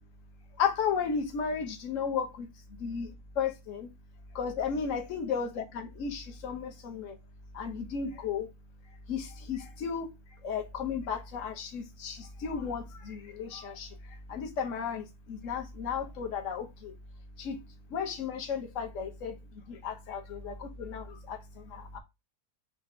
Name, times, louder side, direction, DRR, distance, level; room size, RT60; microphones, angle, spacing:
voice 1, 0.6-2.5 2.8-3.0 3.3-3.9 4.3-7.2 7.5-8.5 9.1-10.1 10.4-17.0 17.4-22.0, left 6 dB, 55° left, 1.2 m, -34 dB
5.7 x 2.2 x 3.7 m
omnidirectional pair, 1.7 m